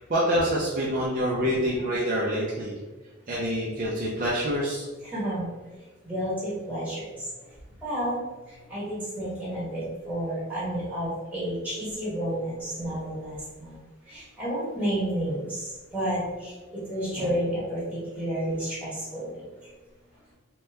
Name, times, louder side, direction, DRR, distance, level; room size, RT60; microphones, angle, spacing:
voice 1, 0.1-2.7 3.3-4.8, equal, 40° right, -5 dB, 0.4 m, -26 dB
voice 2, 5.1-5.5 6.0-7.0 7.8-8.2 8.7-13.4 13.7-13.8 14.1-15.6 15.9-16.5 16.9-17.8 18.1-19.4, right 1 dB, 5° right, -9 dB, 1.2 m, -30 dB
2.8 x 2.2 x 3.4 m, 1.2 s
head